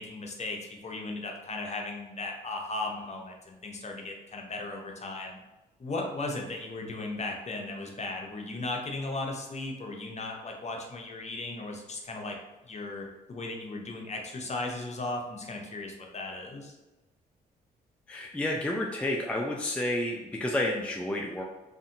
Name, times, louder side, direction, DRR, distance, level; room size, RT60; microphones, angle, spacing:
voice 1, 0.0-5.4 5.8-12.4 12.6-16.7, left 2 dB, 35° left, 1 dB, 0.7 m, -36 dB
voice 2, 18.1-21.4, left 1 dB, 5° left, 0 dB, 0.3 m, -30 dB
2.6 x 2.5 x 2.6 m, 1.1 s
hypercardioid pair, 45°, 20 cm